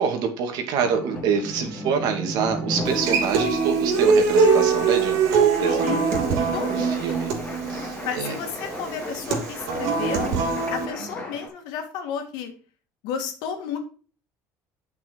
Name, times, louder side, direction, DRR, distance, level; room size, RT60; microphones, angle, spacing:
voice 1, 0.0-5.9 6.7-7.3 7.7-8.4, right 6 dB, 70° right, 5 dB, 2.3 m, -26 dB
sound 1, 0.8-11.5, left 1 dB, 20° left, 2.9 m, -36 dB
Human voice / Acoustic guitar, 2.9-10.9, right 5 dB, 90° right, 2.9 m, -22 dB
voice 2, 5.5-6.1 6.5-7.1 8.0-10.4 10.7-12.5 13.0-13.8, left 7 dB, 80° left, 5 dB, 2.2 m, -32 dB
8.7 x 6.0 x 4.7 m, 0.38 s
cardioid pair, 130°, 7 cm